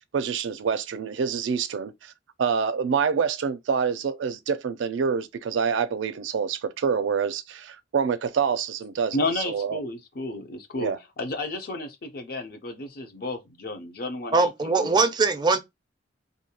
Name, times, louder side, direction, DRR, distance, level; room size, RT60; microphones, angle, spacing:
voice 1, 0.1-2.1 2.4-9.2 9.5-9.8 10.8-11.0, right 6 dB, 90° right, 0.4 m, -26 dB
voice 2, 9.1-14.9, left 2 dB, 55° left, 0.6 m, -32 dB
voice 3, 14.3-15.6, right 3 dB, 25° right, 0.4 m, -21 dB
2.6 x 2.3 x 2.7 m
head